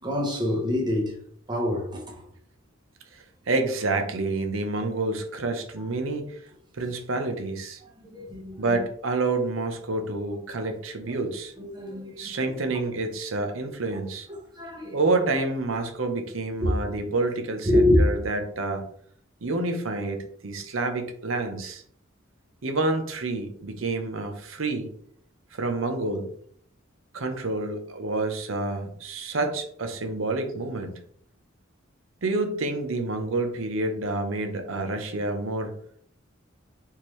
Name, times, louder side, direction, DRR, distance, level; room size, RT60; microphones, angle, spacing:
voice 1, 0.0-1.1 1.5-2.2 8.1-8.8 11.6-12.5 14.3-15.0 17.7-18.0, left 1 dB, 20° right, 1.0 m, -26 dB
voice 2, 3.5-6.3 6.8-7.8 8.6-11.5 12.2-14.3 14.9-18.8 19.4-21.8 22.6-24.9 25.5-26.3 27.1-31.0 32.2-35.7, right 2 dB, 85° right, 0.8 m, -28 dB
4.4 x 3.6 x 3.1 m
head